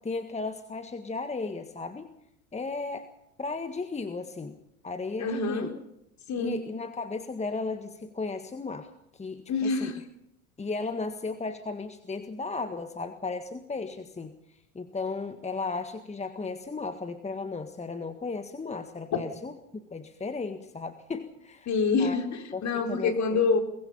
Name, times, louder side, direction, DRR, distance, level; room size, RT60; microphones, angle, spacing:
voice 1, 0.0-2.1 2.5-3.1 3.4-5.7 6.4-9.9 10.6-19.5 19.9-21.7 22.0-22.2 22.5-23.4, left 3 dB, 15° left, 8 dB, 1.7 m, -35 dB
voice 2, 5.2-5.7 6.3-6.6 9.5-10.0 21.7-23.6, left 4 dB, 40° left, 4 dB, 4.4 m, -26 dB
23.0 x 21.0 x 5.6 m, 0.83 s
hypercardioid pair, 80°, 43 cm